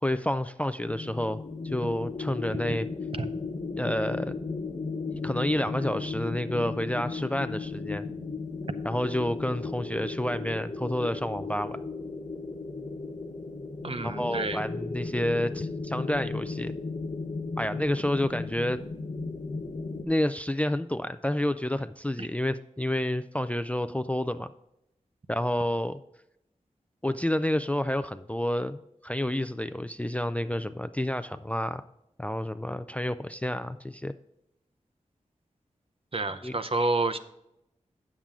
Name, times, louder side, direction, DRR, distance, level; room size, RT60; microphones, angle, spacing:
voice 1, 0.0-2.9 3.8-4.3 5.1-8.1 8.8-11.8 14.0-16.7 17.6-18.8 20.0-24.5 25.3-26.0 27.0-31.8 32.2-34.1 36.4-36.6, left 1 dB, 10° left, 11 dB, 0.3 m, -29 dB
sound 1, 0.8-20.1, left 3 dB, 65° left, 1.1 m, -35 dB
voice 2, 13.8-14.6 22.2-22.3 36.1-37.2, right 2 dB, 45° right, 10 dB, 0.7 m, -29 dB
8.6 x 7.5 x 3.6 m, 0.82 s
wide cardioid pair, 50°, 13 cm